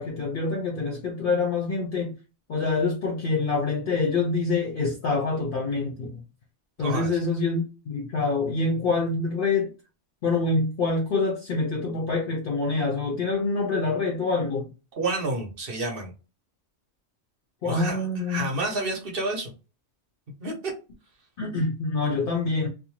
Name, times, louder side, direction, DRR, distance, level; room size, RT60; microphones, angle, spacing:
voice 1, 0.0-2.1 2.5-6.2 6.8-9.7 10.2-14.7 17.6-18.5 21.4-22.7, left 3 dB, 55° left, 0.7 m, -26 dB
voice 2, 6.8-7.1 15.0-16.1 17.6-18.0 18.3-19.5 20.4-20.7, right 2 dB, 55° right, 0.9 m, -29 dB
2.5 x 2.1 x 3.0 m
omnidirectional pair, 1.2 m